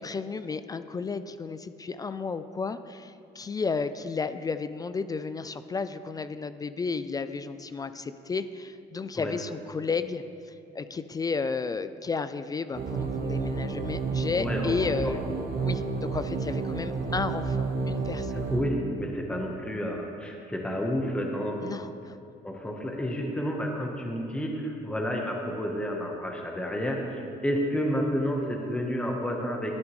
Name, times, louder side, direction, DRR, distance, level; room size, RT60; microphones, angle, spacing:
voice 1, 0.0-15.2 15.6-15.8 16.1-18.4 21.6-22.2, left 4 dB, 20° left, 12 dB, 0.3 m, -33 dB
sound 1, 12.7-18.6, right 4 dB, 65° right, 1.3 m, -30 dB
voice 2, 14.4-14.9 18.5-21.9 22.4-29.7, equal, 5° left, 1 dB, 1.0 m, -30 dB
13.0 x 9.6 x 3.1 m, 2.5 s
cardioid pair, 110°, 17 cm